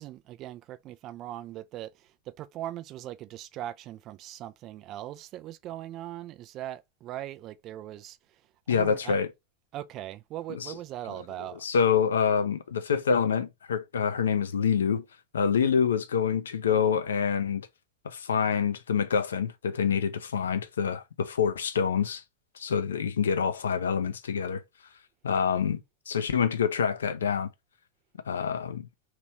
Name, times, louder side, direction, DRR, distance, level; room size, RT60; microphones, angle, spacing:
voice 1, 0.0-8.2 8.7-9.2 9.7-11.6, right 13 dB, 35° right, 0.3 m, -40 dB
voice 2, 8.7-9.3 10.5-10.7 11.5-15.0 15.3-17.7 18.0-22.2 22.6-24.6 25.2-25.8 26.1-27.5 28.3-28.9, left 7 dB, 65° left, 0.4 m, -26 dB
3.0 x 3.0 x 2.9 m
figure-of-eight pair, 90°, 0 cm